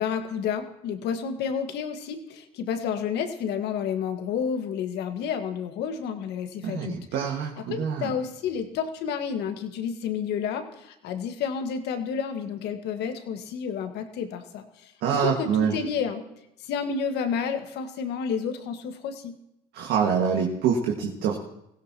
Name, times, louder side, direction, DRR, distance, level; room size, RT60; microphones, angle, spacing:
voice 1, 0.0-7.0 7.6-16.2 16.6-19.3, left 7 dB, 65° left, 6 dB, 1.6 m, -30 dB
voice 2, 6.6-8.1 15.0-15.8 19.7-21.4, right 7 dB, 65° right, 0 dB, 1.8 m, -25 dB
19.5 x 16.0 x 2.9 m, 0.82 s
supercardioid pair, 85°, 18 cm